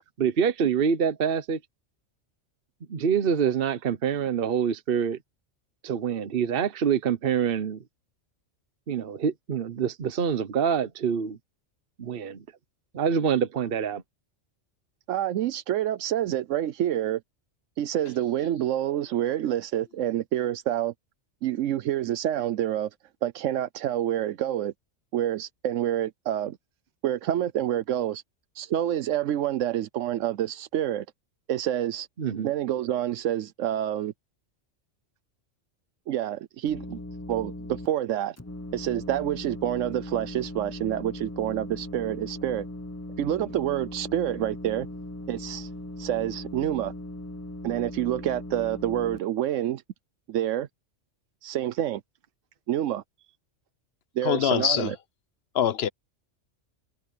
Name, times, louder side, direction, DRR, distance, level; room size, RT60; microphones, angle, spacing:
voice 1, 0.2-1.6 2.9-5.2 5.8-7.8 8.9-11.4 12.0-12.4 12.9-14.0 32.2-32.5, right 7 dB, 50° right, 1.1 m, -26 dB
voice 2, 15.1-17.2 17.8-20.9 21.4-22.9 23.2-24.7 25.1-26.6 27.0-28.2 28.6-31.1 31.5-32.1 32.4-34.1 36.1-37.0 37.3-38.4 38.7-42.7 43.2-44.9 45.3-45.7 46.0-46.9 47.6-49.8 50.3-50.7 51.4-52.0 52.7-53.0 54.2-55.0, right 12 dB, 85° right, 1.0 m, -27 dB
sound 1, 36.7-37.9 38.4-49.2, left 1 dB, 15° left, 0.7 m, -39 dB
voice 3, 54.2-54.9 55.5-55.9, left 9 dB, 60° left, 1.0 m, -23 dB
omnidirectional pair, 1.3 m